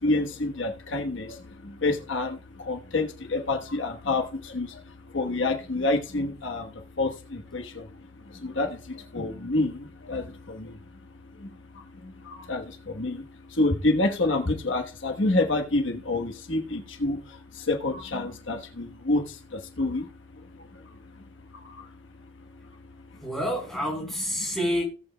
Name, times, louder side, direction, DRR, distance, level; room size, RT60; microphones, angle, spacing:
voice 1, 0.0-1.3 1.8-2.4 2.7-4.2 4.5-4.7 5.1-6.6 7.0-7.1 7.5-7.6 8.4-8.7 9.1-9.7 10.1-10.2 12.5-12.6 13.0-13.2 13.6-17.2 17.7-19.2 19.8-20.0, left 2 dB, 75° left, 1.2 m, -26 dB
voice 2, 23.2-24.8, equal, ahead, 3.9 m, -28 dB
18.0 x 7.8 x 2.2 m
head